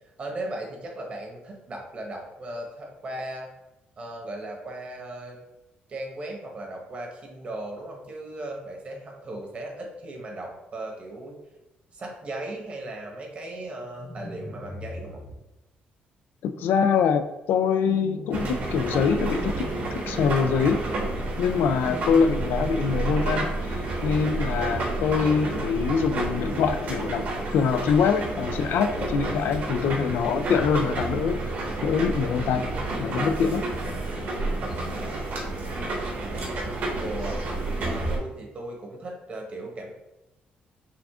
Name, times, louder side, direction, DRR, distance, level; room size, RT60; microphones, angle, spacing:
voice 1, 0.2-3.5 4.0-5.4 5.9-11.4 11.9-15.2 29.6-30.2 34.8-35.5 36.0-36.5 37.0-37.4 37.8-39.9, right 1 dB, 35° right, 1 dB, 1.0 m, -37 dB
sound 1, 13.9-15.4 17.7-18.8 19.1-19.8 21.6-22.8, left 1 dB, 15° left, 0.8 m, -40 dB
voice 2, 16.4-19.7 19.9-20.8 21.4-23.5 24.0-27.2 27.5-31.4 31.8-32.7 33.0-33.6, left 6 dB, 80° left, 9 dB, 0.4 m, -24 dB
sound 2, 18.3-38.2, right 2 dB, 60° right, 1.2 m, -30 dB
5.8 x 2.4 x 3.5 m, 0.96 s
cardioid pair, 150°, 3 cm